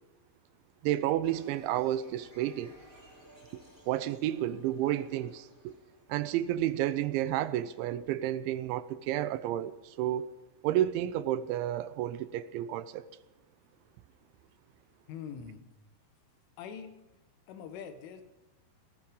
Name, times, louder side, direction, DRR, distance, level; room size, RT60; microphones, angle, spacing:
voice 1, 0.8-2.7 3.5-5.7 6.1-10.3 10.6-13.1, right 12 dB, 80° right, 2.9 m, -31 dB
sound 1, 1.2-6.8, equal, 5° right, 3.6 m, -56 dB
voice 2, 15.1-15.6 16.6-17.0 17.5-18.2, left 7 dB, 80° left, 3.9 m, -43 dB
19.5 x 14.0 x 5.3 m
omnidirectional pair, 5.5 m